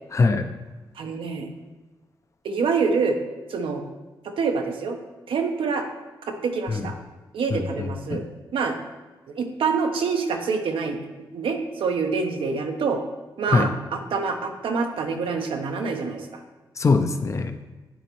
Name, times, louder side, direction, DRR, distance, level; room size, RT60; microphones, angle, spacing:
voice 1, 0.1-0.5 6.7-6.9 7.5-8.2 13.5-13.7 16.8-17.5, left 4 dB, 35° left, 7 dB, 0.5 m, -22 dB
voice 2, 1.0-1.5 2.4-3.2 3.5-3.8 4.2-5.0 5.3-5.8 6.3-6.9 7.3-8.2 8.5-8.8 9.4-11.1 11.3-13.0 13.4-16.4, right 5 dB, 85° right, 4 dB, 0.8 m, -26 dB
10.0 x 4.0 x 3.0 m, 1.2 s
wide cardioid pair, 115°, 9 cm